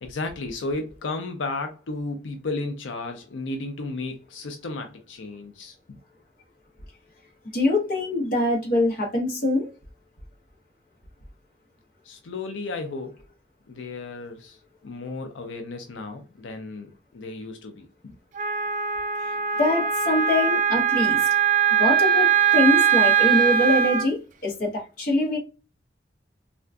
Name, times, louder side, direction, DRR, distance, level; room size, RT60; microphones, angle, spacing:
voice 1, 0.0-6.0 12.0-13.2 13.7-18.1, left 3 dB, 85° left, 0.5 m, -34 dB
voice 2, 7.5-9.7 19.6-21.3 21.8-25.4, left 1 dB, 45° left, 0.9 m, -23 dB
Wind instrument woodwind instrument, 18.4-24.1, right 7 dB, 45° right, 0.3 m, -21 dB
3.6 x 2.5 x 2.2 m
head